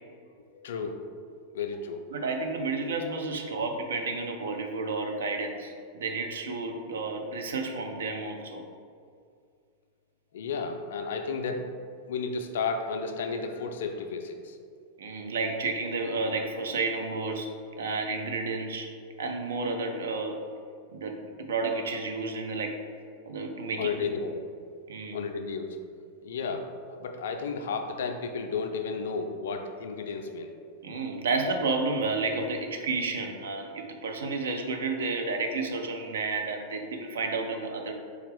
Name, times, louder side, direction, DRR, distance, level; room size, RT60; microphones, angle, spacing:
voice 1, 0.5-1.0 1.5-2.1 10.3-11.7 12.1-14.6 23.8-24.4 25.1-25.8 26.2-30.5, left 5 dB, 60° left, 5 dB, 0.3 m, -33 dB
voice 2, 2.1-8.6 15.0-17.5 17.8-18.9 19.2-20.4 20.9-22.8 23.3-24.1 24.9-25.2 30.8-37.9, right 3 dB, 65° right, 4 dB, 0.4 m, -31 dB
4.1 x 2.3 x 3.4 m, 2.2 s
figure-of-eight pair, 90°, 0 cm